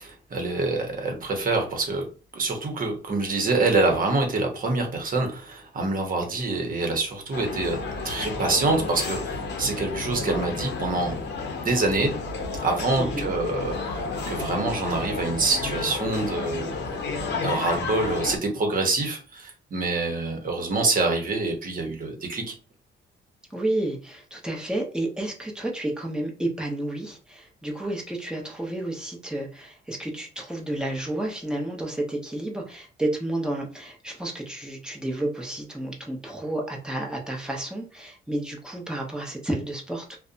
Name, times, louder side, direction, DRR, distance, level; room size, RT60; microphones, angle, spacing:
voice 1, 0.0-2.1 2.3-7.8 8.0-11.1 11.6-12.1 12.6-13.8 14.3-16.7 17.3-22.5, right 3 dB, 45° right, 3 dB, 1.0 m, -26 dB
sound 1, 7.3-18.4, left 3 dB, 60° left, 0.7 m, -31 dB
voice 2, 13.0-13.3 23.5-40.2, right 1 dB, 5° right, 0 dB, 0.8 m, -31 dB
2.5 x 2.2 x 2.5 m, 0.35 s
cardioid pair, 90°, 20 cm